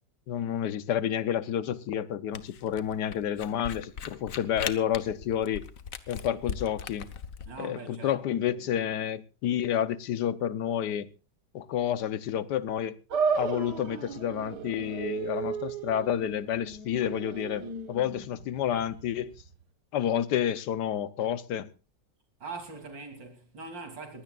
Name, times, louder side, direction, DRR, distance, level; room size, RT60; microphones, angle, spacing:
voice 1, 0.3-5.7 6.1-7.1 7.6-11.1 11.5-13.0 13.4-19.3 19.9-21.7, left 9 dB, 70° left, 1.4 m, -30 dB
Camera, 2.3-7.5, left 7 dB, 55° left, 1.3 m, -39 dB
voice 2, 7.5-8.7 22.4-24.2, right 4 dB, 85° right, 3.8 m, -42 dB
sound 1, 13.1-19.6, right 5 dB, 65° right, 2.0 m, -34 dB
21.5 x 16.0 x 2.4 m
omnidirectional pair, 1.9 m